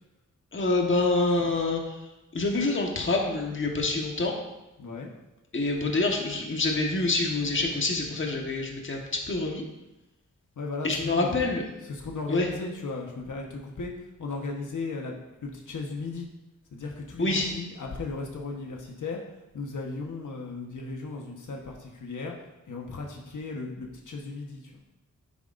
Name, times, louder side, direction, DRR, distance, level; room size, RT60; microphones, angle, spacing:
voice 1, 0.5-1.9 2.3-4.3 5.5-9.0 9.3-9.6 10.8-11.6 12.3-12.5 17.2-17.5, left 2 dB, 40° left, 0 dB, 1.4 m, -26 dB
voice 2, 4.8-5.1 10.6-11.4 11.9-13.9 14.2-15.1 15.4-16.3 16.7-19.2 19.5-22.3 22.6-24.8, left 3 dB, 70° left, 0 dB, 1.3 m, -36 dB
10.0 x 9.2 x 2.6 m, 0.98 s
wide cardioid pair, 120°, 31 cm